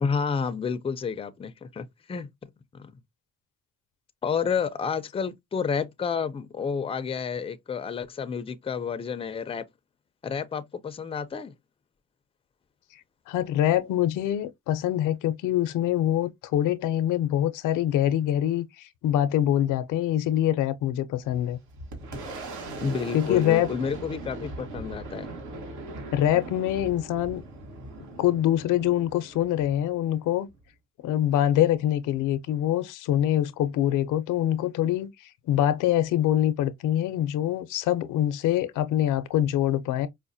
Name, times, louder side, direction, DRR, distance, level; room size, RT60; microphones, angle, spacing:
voice 1, 0.0-2.3 2.7-2.9 4.2-9.6 10.2-11.5 22.8-25.3, left 6 dB, 20° left, 0.4 m, -30 dB
voice 2, 13.3-21.6 23.1-23.7 26.1-27.4 28.0-30.5 31.0-40.1, left 12 dB, 90° left, 0.5 m, -24 dB
Boom, 21.2-30.7, right 2 dB, 75° right, 1.3 m, -40 dB
4.9 x 2.1 x 2.6 m
cardioid pair, 90°, 30 cm